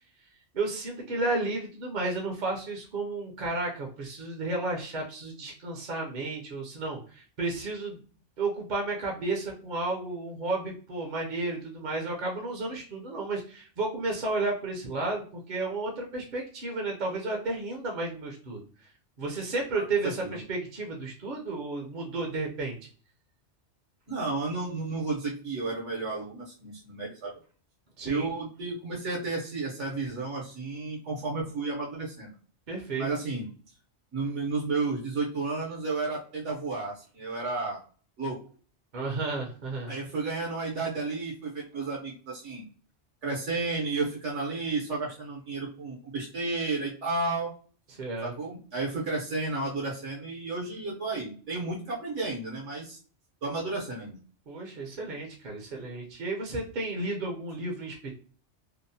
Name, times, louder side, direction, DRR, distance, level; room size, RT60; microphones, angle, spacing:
voice 1, 0.5-8.0 8.4-18.6 19.2-22.8 28.0-28.3 32.7-33.1 38.9-39.9 47.9-48.3 54.5-58.1, right 2 dB, 50° right, 0 dB, 0.6 m, -32 dB
voice 2, 20.0-20.4 24.1-27.3 28.0-32.3 32.9-33.5 34.1-37.8 38.2-38.4 39.9-42.6 43.2-47.5 48.2-53.0 53.4-54.2, right 3 dB, 80° right, -2 dB, 1.2 m, -32 dB
2.8 x 2.1 x 2.6 m, 0.41 s
omnidirectional pair, 1.2 m